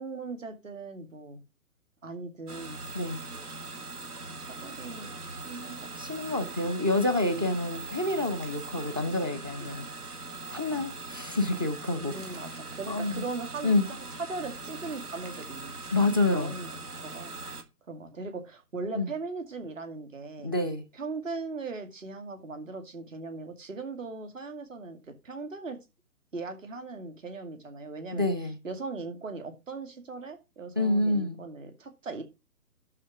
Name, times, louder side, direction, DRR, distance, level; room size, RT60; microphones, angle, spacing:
voice 1, 0.0-1.4 2.0-2.9 4.4-5.9 9.6-9.7 12.0-16.0 16.3-16.7 17.0-17.4 17.9-20.5 20.9-25.0 25.2-25.8 26.3-28.3 28.6-32.2, right 3 dB, 55° right, 2.4 m, -39 dB
sound 1, 2.5-17.6, right 3 dB, 75° right, 1.8 m, -41 dB
voice 2, 6.0-9.9 10.5-12.2 12.9-13.2 13.6-13.8 15.9-16.6 18.9-19.1 20.4-20.8 28.1-28.6 30.8-31.4, left 2 dB, 15° right, 0.5 m, -28 dB
12.5 x 4.2 x 6.1 m
figure-of-eight pair, 135°, 45 cm